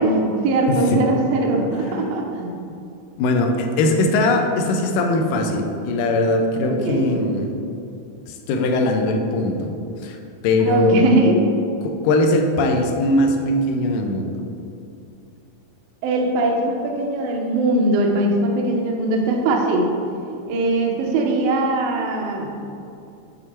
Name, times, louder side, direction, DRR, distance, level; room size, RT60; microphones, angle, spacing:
voice 1, 0.0-2.6 6.7-7.1 10.6-11.4 16.0-19.9 20.5-22.6, right 2 dB, 75° right, 1 dB, 1.5 m, -20 dB
voice 2, 0.7-1.0 3.2-7.5 8.3-9.7 10.0-10.2 10.4-11.0 11.8-14.3, left 2 dB, 80° left, 3 dB, 2.1 m, -20 dB
8.2 x 3.6 x 4.4 m, 2.6 s
omnidirectional pair, 3.6 m